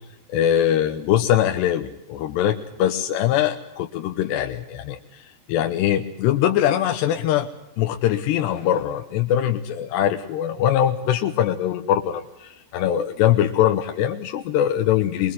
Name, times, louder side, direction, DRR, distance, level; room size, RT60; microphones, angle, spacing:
voice 1, 0.3-7.5 7.8-15.3, left 11 dB, 90° left, 5 dB, 3.2 m, -22 dB
23.5 x 23.0 x 7.8 m, 0.88 s
omnidirectional pair, 4.8 m